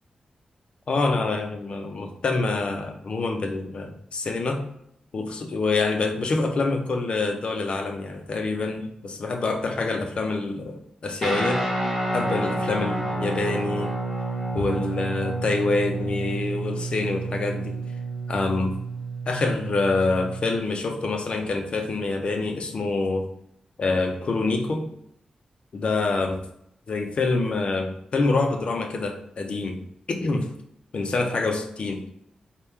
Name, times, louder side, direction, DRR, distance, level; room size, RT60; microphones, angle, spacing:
voice 1, 0.9-4.7 5.1-11.7 12.1-14.0 14.5-17.8 18.3-18.8 19.3-23.3 23.8-24.9 25.7-26.4 26.9-30.5 30.9-32.0, left 3 dB, 50° left, 4 dB, 0.5 m, -26 dB
Guitar, 11.2-20.6, right 2 dB, 10° right, 1.4 m, -29 dB
3.5 x 2.2 x 4.2 m, 0.74 s
wide cardioid pair, 170°, 2 cm